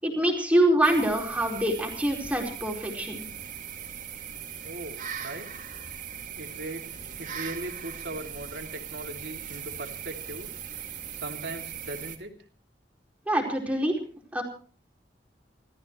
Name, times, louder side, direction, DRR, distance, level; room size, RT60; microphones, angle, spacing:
voice 1, 0.0-3.3 13.3-14.0 14.3-14.4, right 1 dB, 10° right, 0 dB, 4.6 m, -25 dB
sound 1, 0.8-12.2, right 8 dB, 50° right, 2.6 m, -39 dB
voice 2, 4.6-5.5 6.3-6.8 7.2-10.5 11.1-12.3, right 2 dB, 70° right, 3 dB, 3.0 m, -39 dB
29.5 x 14.0 x 3.2 m, 0.42 s
head